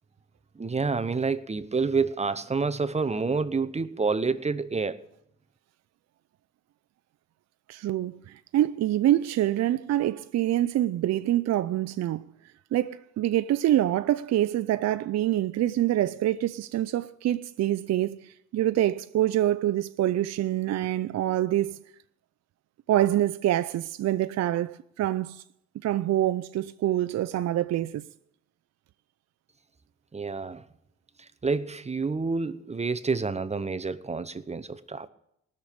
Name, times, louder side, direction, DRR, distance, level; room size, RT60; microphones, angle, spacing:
voice 1, 0.6-5.1 30.1-30.6 31.2-35.1, right 4 dB, 20° right, 0.8 m, -28 dB
voice 2, 7.7-12.3 12.7-21.8 22.9-25.4 25.8-28.1, right 13 dB, 60° right, 0.5 m, -26 dB
18.5 x 6.7 x 8.7 m
cardioid pair, 90°, 30 cm